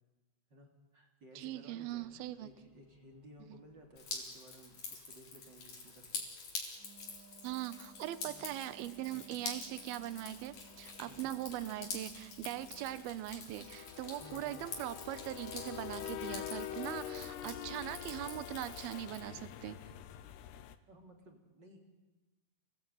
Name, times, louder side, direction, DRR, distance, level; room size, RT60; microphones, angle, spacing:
voice 1, 0.5-6.2 6.6-6.8 8.2-8.5 9.1-9.3 11.1-11.3 14.2-14.7 20.9-21.9, equal, 30° right, 2 dB, 3.2 m, -57 dB
voice 2, 1.4-2.5 3.5-3.6 7.4-19.8, right 14 dB, 70° right, 13 dB, 2.8 m, -41 dB
Drip, 4.0-19.2, left 4 dB, 50° left, 5.2 m, -47 dB
sound 1, 4.3-4.4 6.1-6.3 6.6-6.7 7.0-7.2 7.5-7.6 7.9-20.8, left 11 dB, 80° left, 3.0 m, -47 dB
Wind instrument woodwind instrument, 6.7-13.2, right 5 dB, 50° right, 1.5 m, -61 dB
29.5 x 19.5 x 9.2 m, 1.2 s
omnidirectional pair, 4.8 m